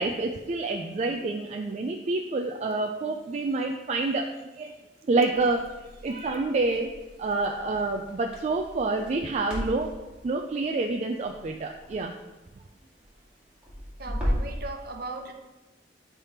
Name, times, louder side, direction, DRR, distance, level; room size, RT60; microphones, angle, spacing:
voice 1, 0.0-4.7 5.1-5.6 6.0-6.9 7.2-9.9 10.2-12.1, right 3 dB, 40° right, 2 dB, 0.3 m, -28 dB
Crackle, 5.3-14.6, equal, 5° right, 2.1 m, -37 dB
voice 2, 14.0-15.3, right 3 dB, 60° right, 4 dB, 0.7 m, -37 dB
7.2 x 3.4 x 4.3 m, 1.1 s
head